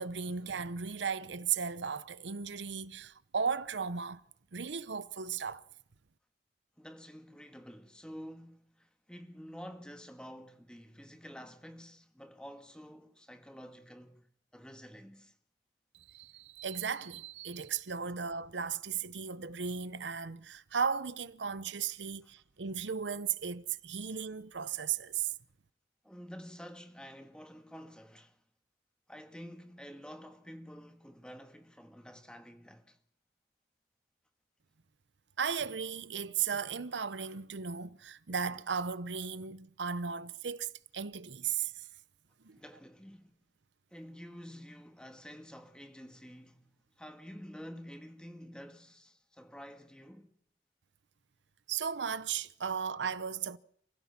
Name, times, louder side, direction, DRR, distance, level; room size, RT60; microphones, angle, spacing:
voice 1, 0.0-4.2 4.5-5.6 15.9-25.3 35.4-41.9 42.4-42.6 51.7-53.6, right 6 dB, 90° right, 0.8 m, -36 dB
voice 2, 6.8-14.3 14.5-15.3 26.0-28.4 29.1-33.0 42.6-43.4 43.9-50.3, equal, 5° left, 1.7 m, -49 dB
29.0 x 16.0 x 6.0 m
head